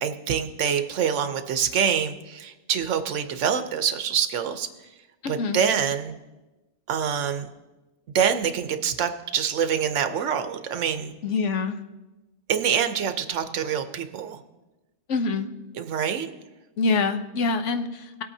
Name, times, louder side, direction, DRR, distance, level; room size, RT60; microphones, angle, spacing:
voice 1, 0.0-4.7 5.3-6.2 6.9-7.5 8.1-11.2 12.5-14.4 15.7-16.3, right 7 dB, 85° right, 8 dB, 1.1 m, -25 dB
voice 2, 5.2-5.6 11.2-11.8 15.1-15.5 16.8-18.2, left 4 dB, 75° left, 7 dB, 1.1 m, -25 dB
19.5 x 8.6 x 2.7 m, 1.1 s
omnidirectional pair, 1.2 m